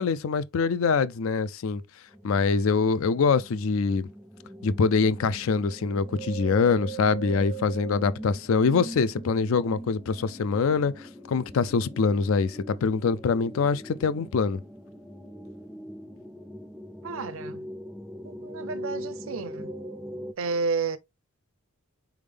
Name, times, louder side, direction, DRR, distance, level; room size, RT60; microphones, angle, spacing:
voice 1, 0.0-1.8 2.2-4.1 4.6-14.6, left 5 dB, 70° left, 0.4 m, -24 dB
sound 1, 2.1-20.3, right 2 dB, ahead, 0.3 m, -41 dB
voice 2, 17.0-17.6 18.2-19.7 20.4-21.0, right 4 dB, 65° right, 0.5 m, -31 dB
4.1 x 3.5 x 3.3 m
head